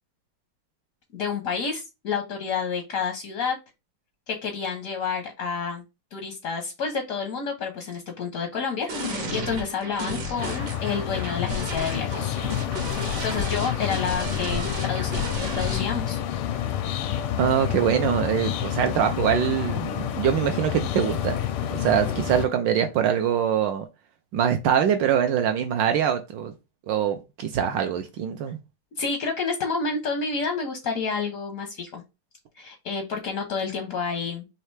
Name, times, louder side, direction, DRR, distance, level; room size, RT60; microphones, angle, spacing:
voice 1, 1.1-3.6 4.3-5.8 6.1-12.4 12.9-16.2 29.0-32.0 32.6-34.5, left 5 dB, 65° left, 0.8 m, -29 dB
sound 1, 8.9-15.9, equal, 60° right, 1.4 m, -33 dB
sound 2, 10.4-22.5, left 11 dB, 85° left, 1.5 m, -29 dB
voice 2, 17.4-21.4 21.7-23.9 24.3-26.5 26.9-28.6, right 9 dB, 75° right, 1.1 m, -23 dB
4.3 x 2.8 x 3.2 m
omnidirectional pair, 2.4 m